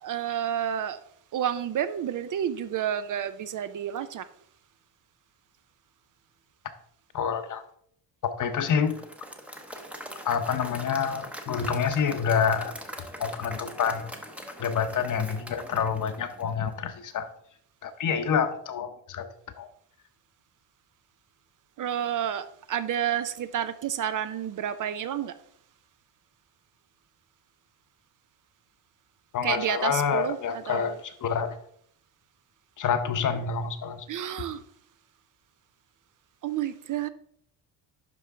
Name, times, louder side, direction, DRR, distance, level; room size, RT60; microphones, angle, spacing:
voice 1, 0.0-1.0 1.3-4.3 21.8-25.3 29.4-31.0 34.1-34.6 36.4-37.1, right 10 dB, 45° right, 0.5 m, -30 dB
voice 2, 7.1-7.6 8.4-9.0 10.2-12.7 13.2-14.1 14.6-17.3 17.8-19.3 19.6-19.7 29.3-31.6 32.8-34.0, left 7 dB, 45° left, 0.9 m, -27 dB
Applause / Crowd, 8.7-16.8, equal, 5° right, 0.7 m, -42 dB
11.5 x 4.4 x 3.6 m
cardioid pair, 135°, 44 cm